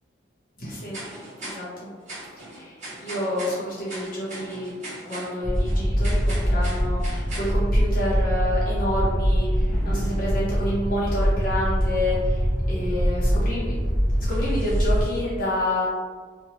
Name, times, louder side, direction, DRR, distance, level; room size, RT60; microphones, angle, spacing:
voice 1, 0.6-1.0 1.4-1.9 2.4-13.7 14.2-15.9, left 1 dB, 45° left, -8 dB, 0.7 m, -29 dB
sound 1, 0.9-8.4 9.1-9.2 10.3-10.4 10.6-10.7 11.0-11.2 11.9-12.0 12.9-13.0 14.2-15.2, right 1 dB, 40° right, 1.3 m, -40 dB
sound 2, 5.4-15.1, equal, 5° left, 0.5 m, -23 dB
2.9 x 2.2 x 2.7 m, 1.5 s
head